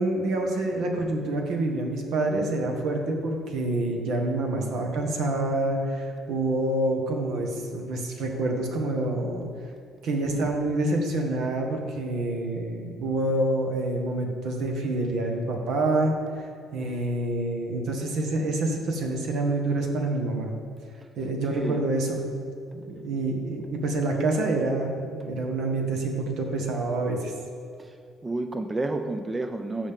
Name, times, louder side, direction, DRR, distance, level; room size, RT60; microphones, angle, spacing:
voice 1, 0.0-9.5 10.0-20.5 21.2-22.5 22.7-27.3, right 2 dB, 70° right, 2 dB, 1.5 m, -27 dB
voice 2, 28.2-29.9, right 2 dB, 20° right, 6 dB, 0.4 m, -30 dB
14.5 x 5.3 x 3.7 m, 2.4 s
cardioid pair, 105°, 0 cm